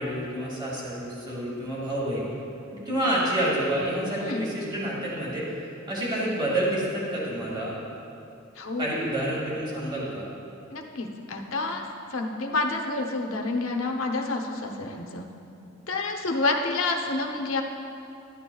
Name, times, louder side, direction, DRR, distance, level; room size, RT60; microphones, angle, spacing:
voice 1, 0.0-2.2 2.9-5.5 5.9-7.8 8.8-10.3, right 1 dB, 25° right, -6 dB, 2.1 m, -28 dB
voice 2, 8.6-8.9 10.7-11.8 12.1-15.2 15.9-17.6, left 3 dB, 70° left, 2 dB, 0.8 m, -28 dB
13.0 x 9.4 x 2.3 m, 2.6 s
head